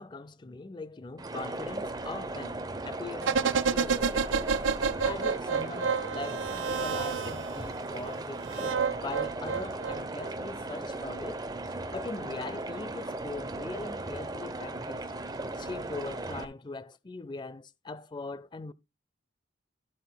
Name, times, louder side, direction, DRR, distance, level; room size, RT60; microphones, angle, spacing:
voice 1, 0.0-4.2 5.0-11.4 11.9-15.1 15.6-18.7, left 3 dB, 25° left, 0.4 m, -41 dB
sound 1, 1.2-16.4, right 2 dB, 20° right, 0.7 m, -37 dB
sound 2, 3.2-7.6 8.4-10.3 10.6-10.7, right 5 dB, 75° right, 0.4 m, -29 dB
13.0 x 8.0 x 2.2 m
head